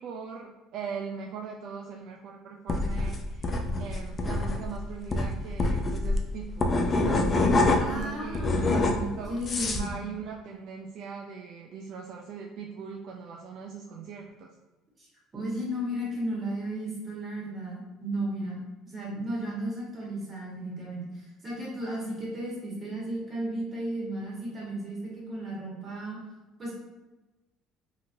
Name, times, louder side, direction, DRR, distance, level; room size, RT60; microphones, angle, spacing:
voice 1, 0.0-8.4 8.9-9.3 9.8-14.5, right 6 dB, 65° right, 0 dB, 0.3 m, -40 dB
sound 1, 2.7-8.0 8.3-9.9, left 2 dB, 35° left, 0.4 m, -26 dB
voice 2, 7.8-9.9 15.0-15.1 15.3-18.6 18.8-26.2 26.6-26.7, right 1 dB, 25° right, -5 dB, 1.4 m, -34 dB
2.8 x 2.7 x 2.6 m, 1.1 s
supercardioid pair, 90°, 0 cm